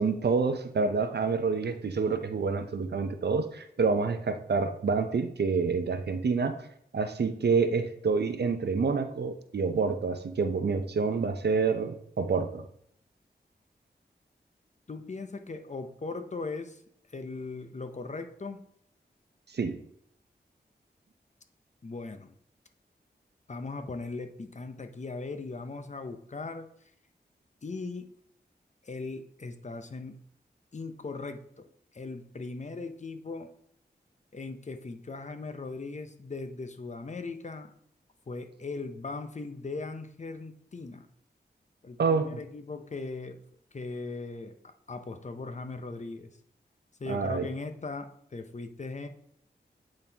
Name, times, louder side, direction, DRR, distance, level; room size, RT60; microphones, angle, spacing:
voice 1, 0.0-6.6 6.9-12.6 19.5-19.8 42.0-42.4 47.1-47.5, right 4 dB, 65° right, 8 dB, 0.7 m, -28 dB
voice 2, 14.9-16.8 17.1-18.6 21.8-22.3 23.5-26.7 27.6-28.1 28.8-30.2 30.7-31.6 31.9-33.5 34.3-37.7 38.3-41.1 41.8-43.4 43.7-44.5 44.9-46.3 47.0-49.1, left 3 dB, 40° left, 7 dB, 0.7 m, -39 dB
8.7 x 3.9 x 2.8 m, 0.69 s
cardioid pair, 50°, 18 cm